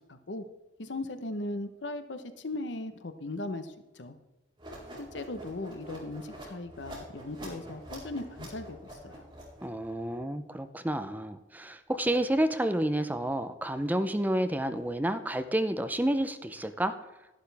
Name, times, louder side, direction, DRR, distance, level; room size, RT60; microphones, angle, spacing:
voice 1, 0.1-0.4 0.8-4.2 5.0-9.2, left 2 dB, 75° left, 9 dB, 0.9 m, -38 dB
sound 1, 4.6-9.9, right 1 dB, 25° right, 3.9 m, -46 dB
voice 2, 9.6-17.0, right 1 dB, 10° right, 10 dB, 0.6 m, -30 dB
11.5 x 11.5 x 3.4 m, 1.1 s
head